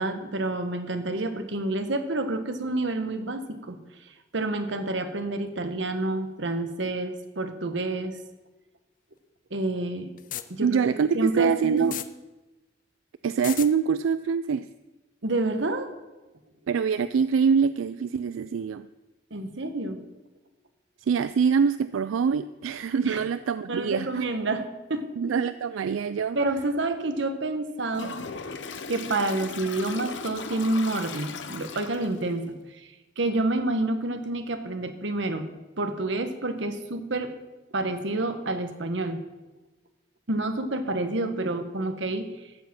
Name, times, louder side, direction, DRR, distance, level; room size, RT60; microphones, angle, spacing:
voice 1, 0.0-8.2 9.5-10.1 10.5-10.8 11.1-12.0 15.2-15.9 19.3-20.0 23.0-23.3 23.7-25.3 26.3-28.2 28.9-35.5 35.8-37.3 37.7-39.2 40.3-42.5, right 2 dB, 65° right, 7 dB, 1.1 m, -29 dB
sound 1, 10.2-10.4 11.8-12.1 13.3-13.7, left 11 dB, 45° left, 0.5 m, -33 dB
voice 2, 10.6-11.9 13.2-14.7 16.7-18.9 21.1-24.2 25.2-26.4, right 6 dB, 85° right, 13 dB, 0.3 m, -24 dB
Toilet flush, 27.9-32.3, left 5 dB, 65° left, 0.8 m, -38 dB
13.5 x 7.5 x 6.0 m, 1.1 s
head